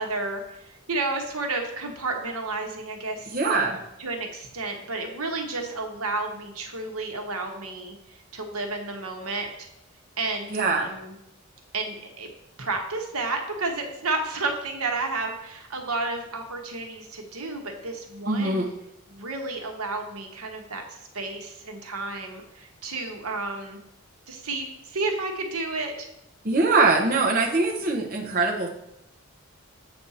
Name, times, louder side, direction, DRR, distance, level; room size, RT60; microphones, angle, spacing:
voice 1, 0.0-8.0 8.3-9.7 10.2-11.2 11.7-12.3 12.6-18.7 19.1-23.8 24.3-26.1, right 3 dB, 80° right, 3 dB, 1.3 m, -31 dB
voice 2, 3.3-3.8 10.5-10.9 18.3-18.7 26.4-28.7, right 3 dB, 40° right, -1 dB, 0.9 m, -22 dB
7.9 x 5.4 x 4.2 m, 0.84 s
head